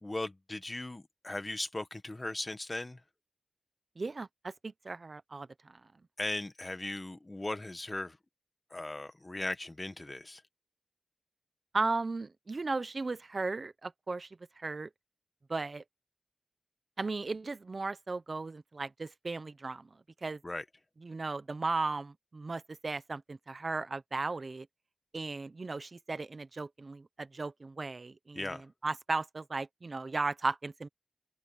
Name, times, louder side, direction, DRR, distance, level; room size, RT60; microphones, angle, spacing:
voice 1, 0.0-3.0 6.2-8.2 8.7-10.4 20.4-20.6 28.3-28.6, left 2 dB, 35° left, 1.3 m, -38 dB
voice 2, 4.0-5.8 11.7-14.3 14.6-14.9 15.5-15.8 17.0-19.9 20.2-20.4 21.0-24.7 25.1-30.9, right 3 dB, 65° right, 0.9 m, -36 dB
open air
wide cardioid pair, 65°, 0 cm